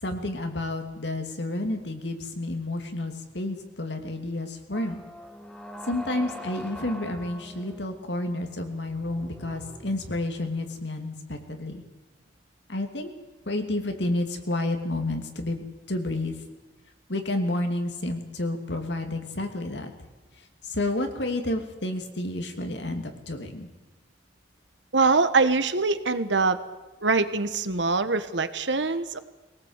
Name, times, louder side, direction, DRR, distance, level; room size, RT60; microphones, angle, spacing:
voice 1, 0.0-5.0 5.9-11.8 12.7-13.1 13.5-16.3 17.1-19.9 20.6-23.7, left 1 dB, 75° left, 5 dB, 2.7 m, -30 dB
sound 1, 4.7-10.7, equal, 5° left, 1.6 m, -43 dB
voice 2, 24.9-26.6 27.0-29.2, right 4 dB, 85° right, 11 dB, 1.3 m, -23 dB
21.5 x 18.0 x 8.2 m, 1.1 s
head